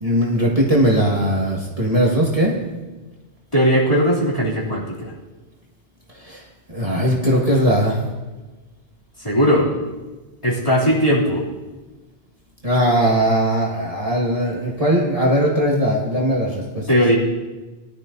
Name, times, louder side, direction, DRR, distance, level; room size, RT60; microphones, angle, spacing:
voice 1, 0.0-2.6 6.2-6.4 6.7-8.0 12.6-16.9, equal, 35° right, -4 dB, 1.8 m, -19 dB
voice 2, 3.5-5.1 9.2-9.7 10.4-11.4 16.9-17.2, equal, 25° left, -7 dB, 3.0 m, -18 dB
19.5 x 12.0 x 2.7 m, 1.2 s
omnidirectional pair, 1.1 m